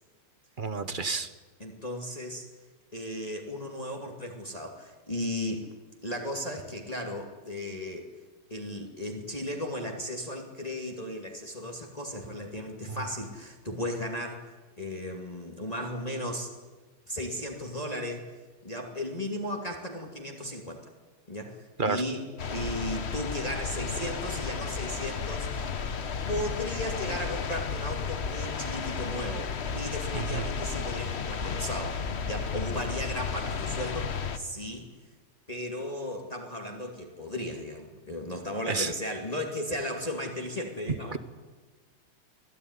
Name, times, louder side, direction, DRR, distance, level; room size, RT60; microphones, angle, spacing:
voice 1, 0.6-1.3 21.8-22.0 30.1-30.4 38.7-38.9 41.1-41.2, right 4 dB, 35° right, 12 dB, 0.8 m, -30 dB
voice 2, 1.6-2.4 2.9-5.6 6.0-8.1 8.5-16.5 17.1-18.2 18.6-20.8 21.3-25.7 26.3-34.9 35.5-41.2, left 1 dB, 15° left, 2 dB, 2.6 m, -35 dB
sound 1, 22.4-34.4, left 6 dB, 40° left, 1.0 m, -33 dB
25.0 x 17.0 x 9.9 m, 1.3 s
omnidirectional pair, 2.4 m